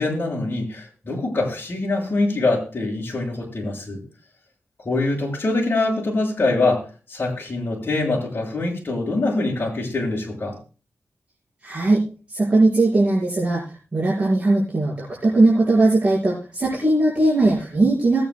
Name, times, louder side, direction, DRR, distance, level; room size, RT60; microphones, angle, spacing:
voice 1, 0.0-4.0 4.8-6.8 7.1-10.5, left 2 dB, 45° left, -3 dB, 5.9 m, -24 dB
voice 2, 11.6-12.0 12.3-13.6 13.9-18.3, right 2 dB, 25° right, -7 dB, 4.8 m, -19 dB
20.0 x 9.1 x 2.3 m, 0.36 s
wide cardioid pair, 105°, 5 cm